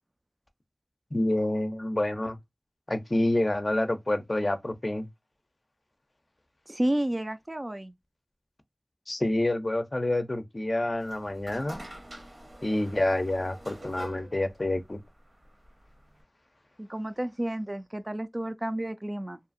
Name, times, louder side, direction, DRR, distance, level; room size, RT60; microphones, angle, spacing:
voice 1, 1.1-2.4 2.9-5.1 9.1-11.8 12.6-15.0, left 1 dB, 50° left, 0.5 m, -28 dB
voice 2, 6.7-7.9 16.8-19.4, right 1 dB, 35° right, 0.3 m, -31 dB
sound 1, 10.9-16.2, right 1 dB, 75° right, 1.1 m, -47 dB
2.7 x 2.4 x 2.5 m
wide cardioid pair, 40°, 0 cm